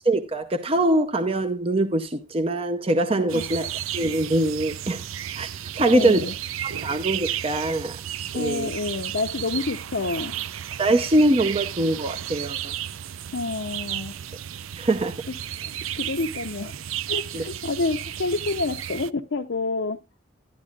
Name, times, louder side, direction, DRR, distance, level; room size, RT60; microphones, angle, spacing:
voice 1, 0.0-3.7 3.9-5.0 5.4-6.2 6.6-8.0 8.3-8.7 10.8-12.7 14.8-15.1 17.3-17.4, right 1 dB, 30° right, 0.7 m, -23 dB
sound 1, 3.3-19.1, right 11 dB, 85° right, 0.5 m, -33 dB
voice 2, 5.8-6.3 8.3-10.3 13.3-14.2 15.3-15.4 16.0-16.8 17.1-20.0, left 3 dB, 65° left, 0.7 m, -28 dB
12.5 x 11.0 x 2.4 m
head